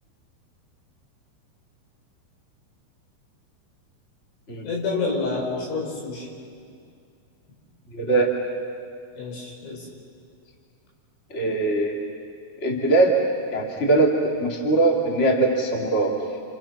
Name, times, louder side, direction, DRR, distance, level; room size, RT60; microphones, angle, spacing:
voice 1, 4.6-6.3 9.2-9.9, left 3 dB, 80° left, -1 dB, 7.3 m, -28 dB
voice 2, 7.9-8.3 11.3-11.9 12.6-13.2 13.5-16.1, right 2 dB, 20° left, -1 dB, 2.5 m, -21 dB
29.5 x 29.5 x 6.1 m, 2.4 s
omnidirectional pair, 5.4 m